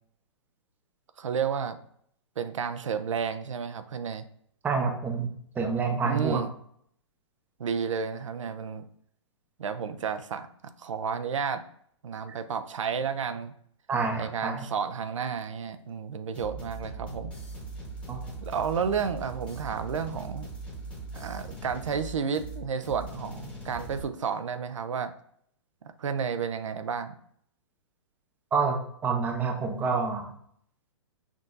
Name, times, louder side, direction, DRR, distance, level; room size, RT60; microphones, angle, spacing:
voice 1, 1.2-1.8 2.4-4.2 6.0-6.5 7.6-8.8 9.6-10.5 10.8-11.6 12.0-13.5 14.2-17.3 18.4-20.5 21.1-25.1 26.0-27.2, right 6 dB, 85° right, 10 dB, 0.4 m, -31 dB
voice 2, 4.6-5.3 5.6-6.4 13.9-14.7 18.1-18.2 28.5-30.3, right 5 dB, 10° right, 4 dB, 0.5 m, -28 dB
sound 1, 16.3-24.0, right 2 dB, 5° left, 1.0 m, -40 dB
6.0 x 2.6 x 2.5 m, 0.65 s
hypercardioid pair, 130°, 16 cm